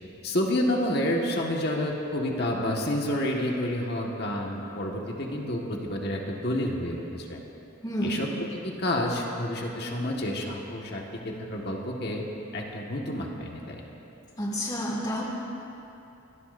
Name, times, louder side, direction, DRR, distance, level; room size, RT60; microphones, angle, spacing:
voice 1, 0.2-7.4 8.0-8.3 8.6-12.2 12.5-13.8, left 1 dB, 55° left, -1 dB, 1.6 m, -29 dB
voice 2, 7.8-8.2 14.4-15.2, equal, 20° left, -4 dB, 2.5 m, -29 dB
24.5 x 18.5 x 2.6 m, 2.9 s
head